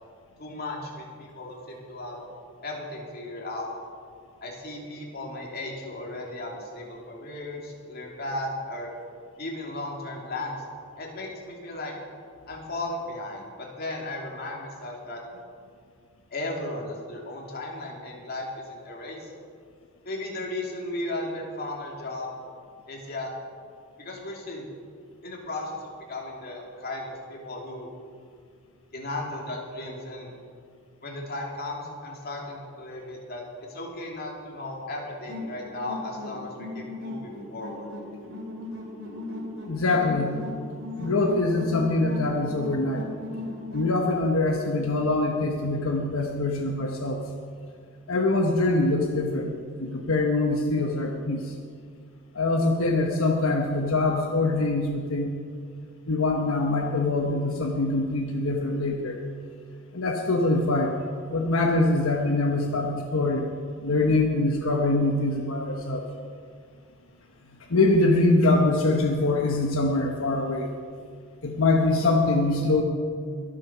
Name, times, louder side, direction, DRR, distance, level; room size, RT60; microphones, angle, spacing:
voice 1, 0.4-2.2 2.6-3.7 4.4-8.9 9.4-10.6 11.0-11.9 12.5-15.2 16.3-19.3 20.0-22.3 22.9-23.3 24.0-24.7 25.2-27.9 28.9-30.3 31.0-37.9, left 2 dB, 45° left, -1 dB, 2.8 m, -35 dB
sound 1, 35.3-44.0, left 2 dB, 60° right, 3.5 m, -37 dB
voice 2, 39.7-40.4 41.0-43.0 43.7-47.2 48.1-49.5 49.8-51.5 52.3-55.4 56.1-59.2 59.9-61.0 61.3-63.5 63.8-66.0 67.7-70.7 71.4-72.8, left 2 dB, 80° left, 1 dB, 1.2 m, -24 dB
22.5 x 7.6 x 6.1 m, 2.1 s
head